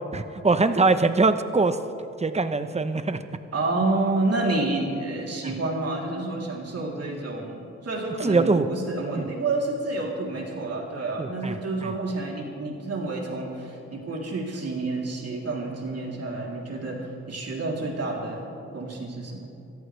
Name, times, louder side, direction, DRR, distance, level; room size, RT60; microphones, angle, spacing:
voice 1, 0.1-1.8 2.2-3.2 5.4-5.5 8.2-8.7 9.1-9.2 11.2-11.9, right 3 dB, 20° right, 10 dB, 1.0 m, -23 dB
voice 2, 3.5-19.5, right 2 dB, 55° right, -1 dB, 3.5 m, -29 dB
25.5 x 14.0 x 3.4 m, 2.6 s
cardioid pair, 65°, 30 cm